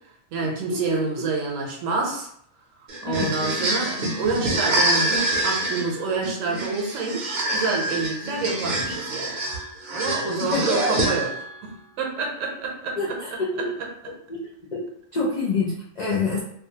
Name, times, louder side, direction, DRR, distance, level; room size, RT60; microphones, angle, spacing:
voice 1, 0.3-2.3 3.0-9.4 9.9-11.7 12.0-14.1, right 4 dB, 75° right, 1 dB, 1.0 m, -28 dB
sound 1, 2.9-11.5, right 1 dB, 50° right, 0.6 m, -26 dB
voice 2, 13.0-13.7 14.3-14.4 14.7-14.9 15.1-16.4, left 4 dB, 70° left, -6 dB, 0.4 m, -26 dB
2.6 x 2.3 x 2.8 m, 0.68 s
omnidirectional pair, 1.4 m